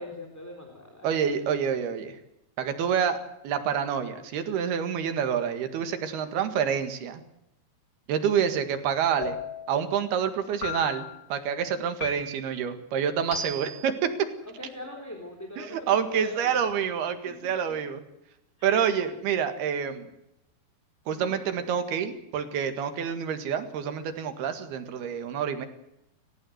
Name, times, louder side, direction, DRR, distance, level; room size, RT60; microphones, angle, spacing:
voice 1, 0.0-1.1 13.3-13.4 13.7-13.8 14.6-16.7 17.2-17.7 18.6-18.9 21.1-21.4, left 1 dB, 5° left, 1 dB, 3.2 m, -41 dB
voice 2, 1.0-2.2 2.6-3.2 3.4-7.2 8.1-9.4 9.7-14.3 15.6-18.0 18.6-20.1 21.1-25.7, right 8 dB, 80° right, 8 dB, 3.8 m, -27 dB
sound 1, 9.2-9.8 10.6-11.2 12.0-12.6 13.3-13.9, left 3 dB, 25° left, 4.1 m, -35 dB
30.0 x 15.0 x 8.0 m, 0.85 s
omnidirectional pair, 4.4 m